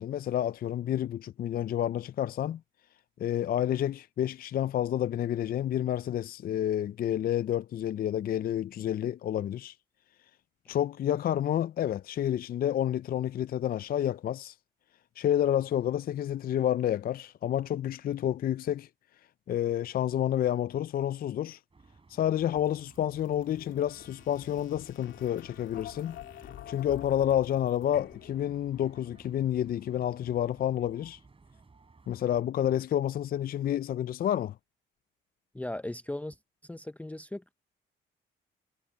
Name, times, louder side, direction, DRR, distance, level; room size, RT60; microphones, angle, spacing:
voice 1, 0.0-2.6 3.2-9.7 10.7-14.5 15.2-18.9 19.5-21.6 22.1-26.2 26.7-31.2 32.1-34.5, left 11 dB, 50° left, 0.4 m, -29 dB
sound 1, 21.7-32.4, right 4 dB, 25° right, 8.0 m, -58 dB
sound 2, 22.6-29.3, left 12 dB, 75° left, 2.1 m, -48 dB
voice 2, 35.5-36.4 36.6-37.5, left 1 dB, 5° left, 0.6 m, -37 dB
cardioid pair, 90°, 20 cm